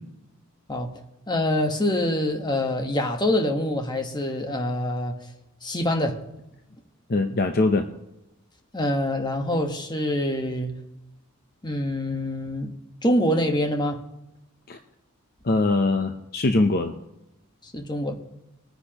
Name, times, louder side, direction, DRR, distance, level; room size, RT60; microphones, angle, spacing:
voice 1, 1.3-5.1 5.6-6.2 8.7-10.7 11.6-12.7 13.0-14.0 17.6-18.1, left 1 dB, 20° left, 1.3 m, -25 dB
voice 2, 7.1-7.9 14.7-14.8 15.4-16.9, left 2 dB, 45° left, 0.7 m, -22 dB
22.0 x 9.9 x 3.0 m
head